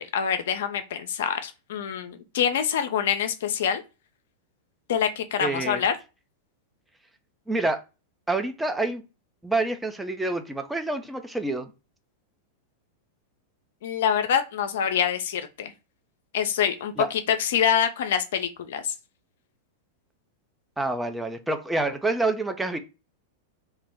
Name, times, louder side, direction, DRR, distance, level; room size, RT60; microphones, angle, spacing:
voice 1, 0.0-3.8 4.9-5.9 13.8-15.7 16.3-18.9, left 8 dB, 65° left, 0.3 m, -25 dB
voice 2, 5.4-5.8 7.5-7.8 8.3-9.0 9.4-11.7 17.0-17.1 20.8-22.8, right 2 dB, 5° right, 0.4 m, -27 dB
2.2 x 2.0 x 3.2 m
hypercardioid pair, 95°, 0 cm